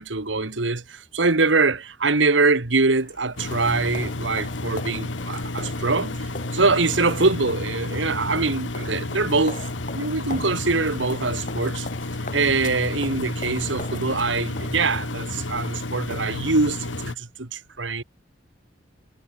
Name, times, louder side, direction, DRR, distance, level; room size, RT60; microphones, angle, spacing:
voice 1, 0.0-9.6 10.0-11.9 12.3-18.0, right 3 dB, 80° right, 1.8 m, -23 dB
sound 1, 2.9-16.6, left 2 dB, 45° left, 5.9 m, -41 dB
Engine, 3.4-17.2, left 2 dB, 85° left, 1.8 m, -31 dB
head